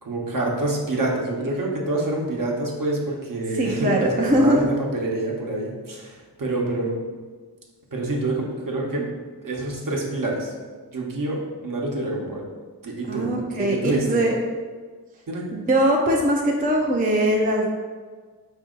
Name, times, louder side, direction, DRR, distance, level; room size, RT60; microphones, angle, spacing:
voice 1, 0.0-7.0 7.9-9.1 9.4-10.5 10.9-12.4 12.8-14.2 15.3-15.4, right 2 dB, 55° right, -1 dB, 0.9 m, -27 dB
voice 2, 3.5-4.6 13.1-14.4 15.5-17.7, right 1 dB, 20° right, 0 dB, 0.4 m, -21 dB
5.2 x 2.7 x 3.8 m, 1.5 s
wide cardioid pair, 105°, 41 cm